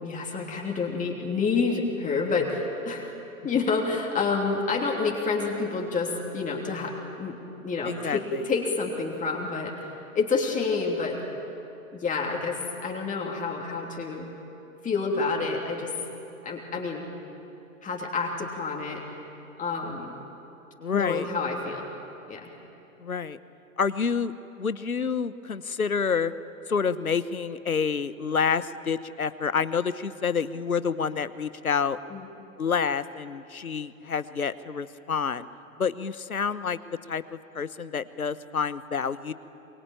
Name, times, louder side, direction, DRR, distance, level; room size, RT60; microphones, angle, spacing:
voice 1, 0.0-3.1 3.4-7.4 7.6-11.2 11.9-14.3 14.8-15.9 16.4-17.1 17.8-19.0 19.6-20.1 20.9-21.9 22.3-22.5 32.1-32.2, left 4 dB, 20° left, 0 dB, 3.1 m, -28 dB
voice 2, 7.8-8.2 20.8-21.3 23.0-23.4 23.8-24.3 24.6-26.3 26.7-32.0 32.6-35.5 35.8-36.8 37.1-39.3, left 6 dB, 80° left, 15 dB, 1.1 m, -28 dB
25.5 x 24.5 x 9.0 m, 3.0 s
figure-of-eight pair, 100°, 42 cm